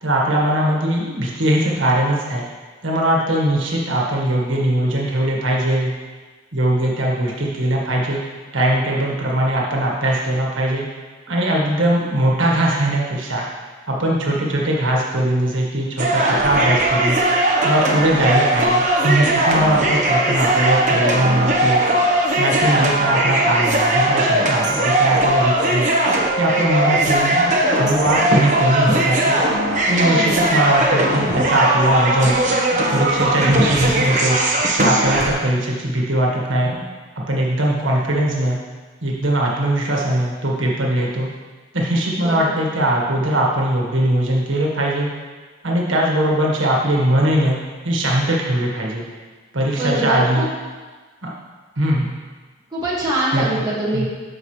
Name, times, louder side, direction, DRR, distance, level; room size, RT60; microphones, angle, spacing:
voice 1, 0.0-2.4 2.8-5.9 6.5-8.2 8.5-10.8 11.3-13.4 13.9-17.2 17.6-21.8 22.3-25.9 26.4-29.4 29.9-32.4 32.9-34.4 34.8-36.8 37.3-38.6 39.0-41.3 41.7-45.1 45.6-49.0 49.5-50.5 51.2-51.3 51.8-52.2 53.3-53.4 53.9-54.1, right 1 dB, 85° right, -3 dB, 1.6 m, -20 dB
sound 1, 16.0-35.3, right 1 dB, 40° right, 1.1 m, -19 dB
voice 2, 30.0-30.5 42.2-42.5 49.8-50.5 52.7-54.1, right 1 dB, 20° right, -8 dB, 2.0 m, -23 dB
13.5 x 5.5 x 3.3 m, 1.4 s
head